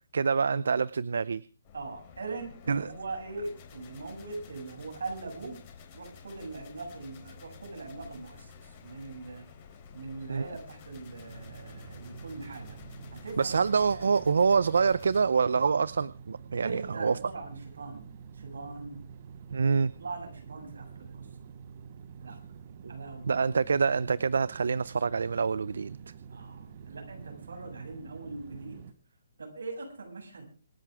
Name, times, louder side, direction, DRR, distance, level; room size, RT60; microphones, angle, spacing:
voice 1, 0.1-1.4 2.7-2.9 10.3-10.5 13.4-17.2 19.5-19.9 22.8-22.9 23.3-26.0, right 5 dB, 70° right, 19 dB, 0.7 m, -26 dB
sound 1, 1.6-15.2, left 6 dB, 20° left, 3.8 m, -51 dB
voice 2, 1.7-5.6 5.9-9.5 9.9-12.8 13.1-13.6 13.9-14.1 16.6-19.0 20.0-21.5 22.2-22.4 22.9-23.4 26.3-28.8 29.4-30.5, right 3 dB, 85° right, 2 dB, 7.9 m, -41 dB
sound 2, 11.3-28.9, right 6 dB, 30° right, 1.0 m, -47 dB
26.5 x 11.0 x 3.6 m, 0.36 s
hypercardioid pair, 175°, 0 cm